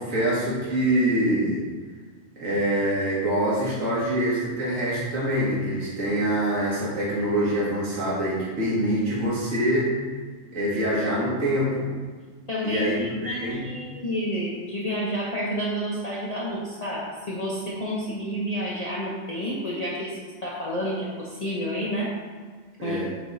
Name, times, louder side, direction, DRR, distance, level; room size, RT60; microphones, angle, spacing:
voice 1, 0.0-1.6 2.4-9.9 10.5-11.9 12.6-13.6 22.8-23.1, right 1 dB, 75° right, -7 dB, 2.1 m, -25 dB
voice 2, 12.5-22.2 22.8-23.0, equal, 35° left, -7 dB, 0.9 m, -30 dB
7.9 x 3.6 x 4.1 m, 1.5 s
omnidirectional pair, 1.4 m